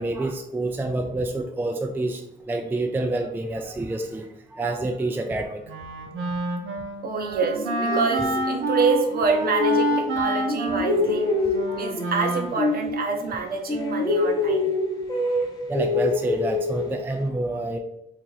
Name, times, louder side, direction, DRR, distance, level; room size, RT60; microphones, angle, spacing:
voice 1, 0.0-2.2 2.5-4.3 4.5-5.6 11.7-11.8 15.7-17.8, right 2 dB, 10° right, 4 dB, 0.3 m, -27 dB
Wind instrument woodwind instrument, 5.7-13.0, right 1 dB, 85° right, 0.6 m, -28 dB
voice 2, 7.0-11.3 11.7-14.7, right 4 dB, 50° right, 2 dB, 0.7 m, -27 dB
sound 1, 7.4-10.2 10.5-13.4 13.7-17.2, left 3 dB, 20° left, 0.7 m, -26 dB
2.9 x 2.5 x 4.0 m, 0.83 s
cardioid pair, 90°, 20 cm